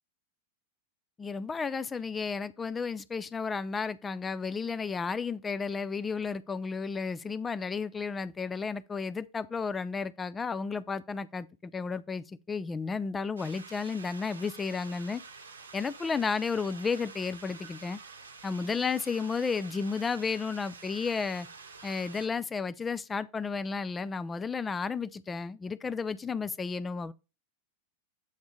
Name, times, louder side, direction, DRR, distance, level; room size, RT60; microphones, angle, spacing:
voice 1, 1.2-15.2 15.7-18.0 18.4-21.5 21.8-27.1, left 5 dB, 15° left, 0.4 m, -33 dB
sound 1, 13.4-22.3, right 4 dB, 70° right, 0.8 m, -48 dB
7.8 x 3.5 x 5.0 m
figure-of-eight pair, 90°, 0 cm